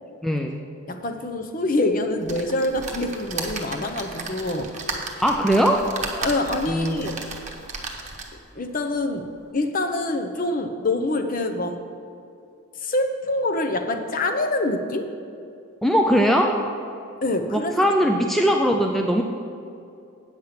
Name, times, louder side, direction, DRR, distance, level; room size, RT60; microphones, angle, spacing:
voice 1, 0.2-0.6 5.2-5.8 6.7-7.0 15.8-16.5 17.5-19.2, equal, ahead, 2 dB, 0.4 m, -20 dB
voice 2, 0.9-4.7 6.2-7.2 8.5-9.3 9.5-11.8 12.8-15.1 17.2-17.7 18.0-18.2, left 2 dB, 40° left, 7 dB, 0.7 m, -25 dB
sound 1, 2.3-8.5 9.0-9.1 9.4-9.5, right 3 dB, 35° right, 1.0 m, -34 dB
8.8 x 7.3 x 5.8 m, 2.6 s
head